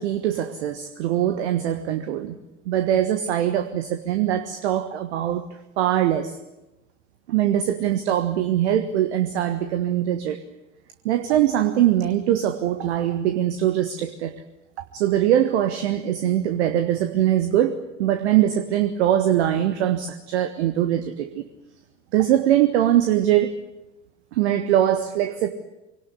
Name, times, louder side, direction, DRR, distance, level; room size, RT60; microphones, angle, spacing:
voice 1, 0.0-2.4 2.7-5.4 5.8-6.4 7.3-10.4 11.0-14.3 14.9-21.4 22.1-23.6 24.3-25.5, right 11 dB, 60° right, 9 dB, 1.6 m, -22 dB
24.5 x 18.5 x 9.7 m, 0.97 s
figure-of-eight pair, 75°, 38 cm